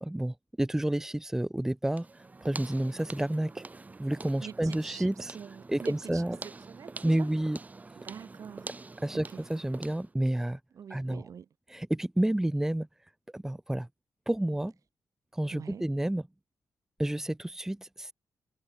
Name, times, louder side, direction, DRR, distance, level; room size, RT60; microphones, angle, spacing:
voice 1, 0.0-3.6 4.0-5.3 5.7-6.4 7.0-7.6 9.0-10.6 10.9-11.2 11.7-12.9 13.3-13.9 14.3-14.7 15.3-16.3 17.0-18.1, right 1 dB, 5° right, 1.4 m, -30 dB
sound 1, 1.9-10.1, right 3 dB, 25° right, 7.5 m, -45 dB
voice 2, 4.4-6.2 6.7-7.3 8.0-8.7 9.1-9.4 10.7-11.5 15.5-15.8, right 7 dB, 55° right, 2.3 m, -45 dB
wide cardioid pair, 135°, 7 cm